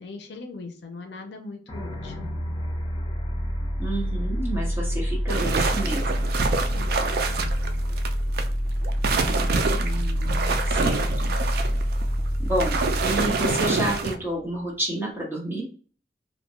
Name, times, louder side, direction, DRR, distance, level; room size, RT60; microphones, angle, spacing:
voice 1, 0.0-2.3 6.7-7.3, left 3 dB, 70° left, 4 dB, 0.5 m, -40 dB
sound 1, 1.7-14.4, equal, 25° left, 0.7 m, -27 dB
voice 2, 3.8-6.1 9.8-11.6 12.4-15.6, right 1 dB, 15° right, -4 dB, 1.1 m, -30 dB
sound 2, 5.3-8.5 8.8-14.2, right 4 dB, 60° right, 0.4 m, -26 dB
2.5 x 2.2 x 2.9 m, 0.42 s
head